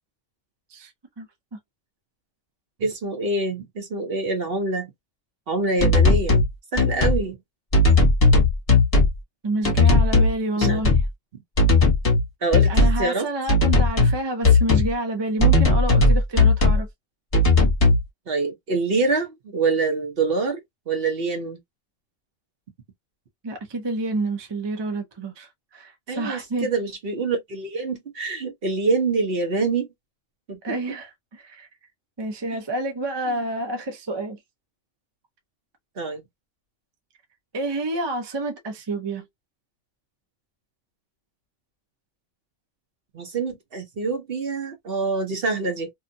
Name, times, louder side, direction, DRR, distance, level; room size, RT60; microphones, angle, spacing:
voice 1, 2.8-4.9 5.5-6.4 6.7-7.4 10.6-10.8 12.4-13.3 18.3-20.6 20.9-21.6 26.1-29.9 30.5-30.8 32.5-32.6 33.3-33.5 36.0-36.2 43.1-45.9, right 3 dB, 50° right, 1.0 m, -25 dB
sound 1, 5.8-6.5 6.8-7.2 7.7-9.2 9.6-10.3 10.6-11.1 11.6-12.2 12.5-13.0 13.5-14.2 14.4-14.9 15.4-16.8 17.3-18.0, left 3 dB, 30° left, 1.1 m, -17 dB
voice 2, 9.4-11.0 12.7-16.9 23.4-26.7 30.6-31.7 32.2-34.4 37.5-39.2, right 2 dB, 25° right, 0.6 m, -28 dB
2.7 x 2.3 x 2.6 m
omnidirectional pair, 1.3 m